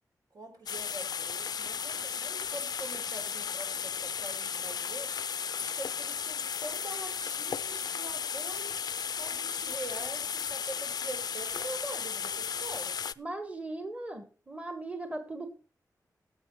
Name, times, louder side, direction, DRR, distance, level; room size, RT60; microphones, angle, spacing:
voice 1, 0.3-5.1 5.6-8.8 9.2-13.0, right 2 dB, 75° right, 3 dB, 4.3 m, -44 dB
sound 1, 0.7-13.1, left 7 dB, 80° left, 0.4 m, -35 dB
voice 2, 13.2-15.5, right 2 dB, 20° right, 8 dB, 1.3 m, -38 dB
18.0 x 8.2 x 3.2 m, 0.33 s
wide cardioid pair, 135°, 7 cm